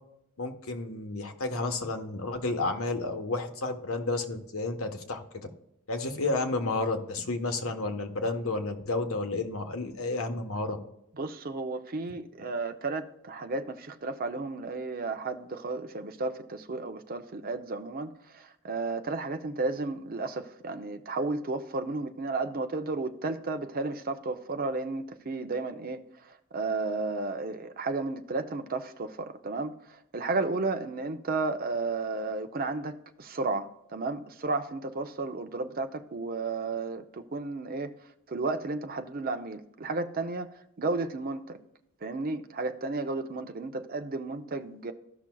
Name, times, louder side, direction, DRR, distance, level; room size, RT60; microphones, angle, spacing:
voice 1, 0.4-5.5 5.9-10.8, left 2 dB, 75° left, 6 dB, 1.1 m, -31 dB
voice 2, 11.2-26.0 26.5-37.9 38.3-40.5 40.8-41.6 42.0-44.9, right 3 dB, 45° right, 8 dB, 0.6 m, -33 dB
14.0 x 6.0 x 2.3 m, 0.82 s
head